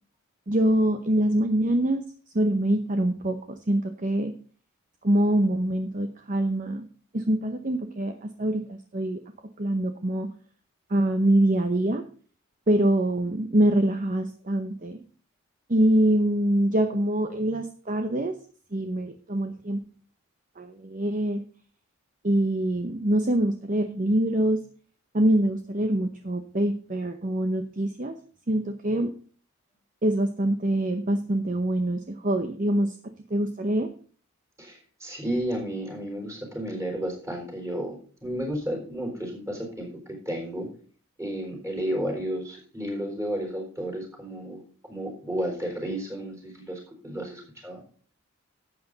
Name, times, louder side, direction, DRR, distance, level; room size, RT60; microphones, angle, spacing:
voice 1, 0.5-2.0 2.3-4.3 5.0-6.9 7.1-9.2 9.6-10.3 10.9-12.0 12.7-15.0 15.7-18.4 18.7-19.8 20.6-21.4 22.2-24.6 25.1-28.1 28.5-29.1 30.0-33.0 33.3-33.9, right 1 dB, 35° right, 7 dB, 0.8 m, -24 dB
voice 2, 34.6-40.7 41.2-44.6 44.9-47.8, equal, 15° right, 1 dB, 4.1 m, -32 dB
12.0 x 8.3 x 4.0 m, 0.42 s
head